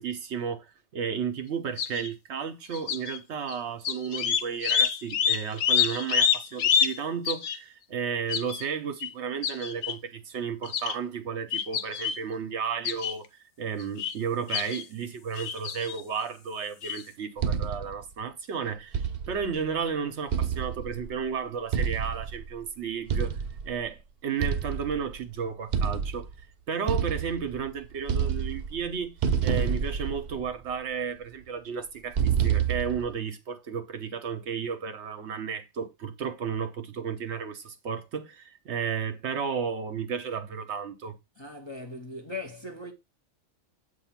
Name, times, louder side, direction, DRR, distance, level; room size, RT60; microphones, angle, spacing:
voice 1, 0.0-23.4 23.6-26.3 26.7-29.2 29.4-41.2, right 6 dB, 65° right, 0.9 m, -33 dB
sound 1, 1.8-2.1 2.7-3.2 3.5-3.6 3.8-7.0 7.2-7.6 8.3-8.6 9.0-9.1 9.4-9.9 10.6-10.9 11.5-12.2 12.8-13.1 13.8-14.1 14.5-14.8 15.3-16.0 16.8-17.0, left 8 dB, 60° left, 0.8 m, -27 dB
sound 2, 17.4-18.0 18.9-19.5 20.3-21.1 21.7-22.5 23.1-23.7 24.4-25.2 25.7-26.4 26.9-27.7 28.0-28.9 29.2-30.7 32.1-33.1, right 7 dB, 85° right, 0.4 m, -28 dB
voice 2, 41.4-42.9, left 2 dB, 25° left, 0.7 m, -39 dB
8.0 x 2.7 x 5.7 m
omnidirectional pair, 1.4 m